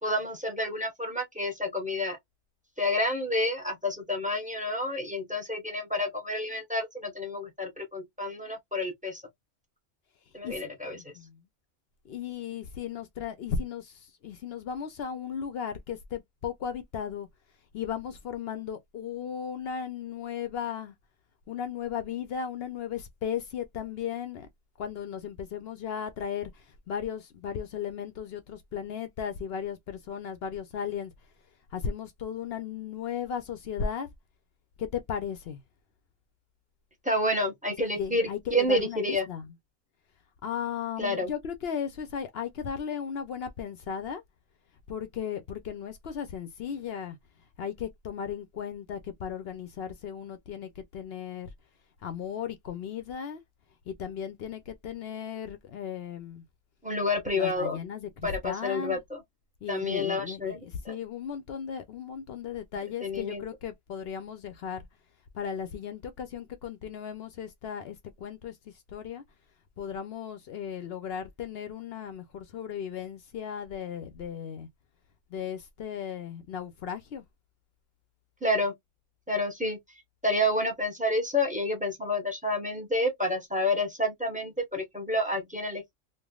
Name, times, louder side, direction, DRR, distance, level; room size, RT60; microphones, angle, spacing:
voice 1, 0.0-2.2 2.8-9.2 10.3-11.1 37.0-39.2 41.0-41.3 56.8-57.8 58.2-59.2 59.7-60.6 60.8-60.9 63.0-63.4 78.4-78.7 79.3-79.8 80.2-85.9, left 1 dB, 5° right, 0.8 m, -29 dB
voice 2, 10.4-11.4 12.0-17.3 17.7-20.9 21.5-24.5 24.8-31.1 31.7-34.1 34.8-35.6 37.7-39.6 40.4-44.2 44.9-47.2 47.6-51.5 52.0-53.4 53.9-56.4 57.3-59.0 59.6-64.9 65.3-69.2 69.8-74.7 75.3-77.2, left 7 dB, 65° left, 0.7 m, -36 dB
3.3 x 2.3 x 2.3 m
omnidirectional pair, 1.3 m